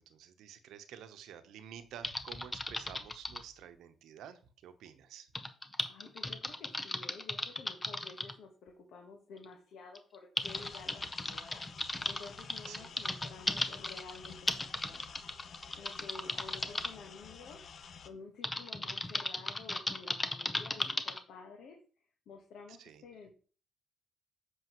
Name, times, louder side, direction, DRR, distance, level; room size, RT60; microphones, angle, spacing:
voice 1, 0.0-5.3 12.7-13.0 22.7-23.0, right 9 dB, 85° right, 10 dB, 0.8 m, -51 dB
Typing, 2.0-3.5 5.4-8.3 9.4-9.5 10.0-16.9 18.4-21.2, left 2 dB, 20° left, 0.8 m, -36 dB
voice 2, 5.9-11.6 12.0-15.0 15.7-17.6 18.0-23.3, left 4 dB, 75° left, 1 dB, 1.3 m, -51 dB
sound 1, 10.4-18.1, left 6 dB, 55° left, 0.7 m, -51 dB
7.7 x 6.2 x 3.0 m, 0.38 s
cardioid pair, 90°, 0 cm